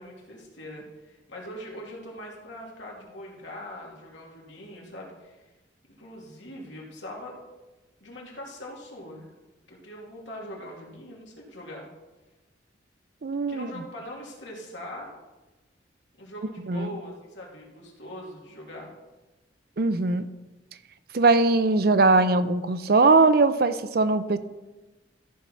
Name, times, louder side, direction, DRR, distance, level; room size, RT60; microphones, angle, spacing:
voice 1, 0.0-5.5 6.0-7.4 8.0-9.3 9.7-11.9 13.5-15.1 16.2-18.9, equal, 85° left, -2 dB, 2.7 m, -41 dB
voice 2, 13.2-13.7 16.7-16.9 19.8-20.2 21.1-24.4, right 3 dB, 55° right, 12 dB, 0.6 m, -20 dB
14.0 x 4.7 x 5.7 m, 1.1 s
head